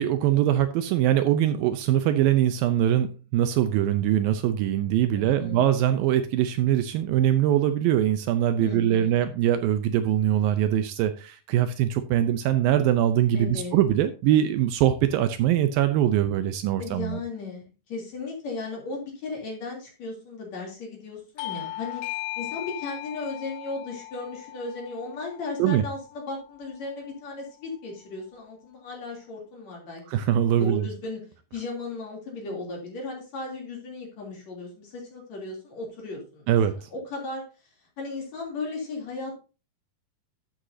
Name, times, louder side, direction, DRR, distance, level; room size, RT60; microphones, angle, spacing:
voice 1, 0.0-17.2 25.6-25.8 30.1-30.9 36.5-36.9, right 11 dB, 80° right, 10 dB, 2.3 m, -22 dB
voice 2, 5.1-5.6 8.5-9.2 13.3-13.8 16.8-22.0 22.4-30.2 30.6-31.2 31.5-36.5 36.9-37.4 38.0-39.3, left 3 dB, 45° left, -1 dB, 4.0 m, -36 dB
Bell / Doorbell, 21.4-26.5, left 16 dB, 90° left, 2.5 m, -38 dB
12.5 x 7.9 x 2.7 m, 0.32 s
omnidirectional pair, 4.4 m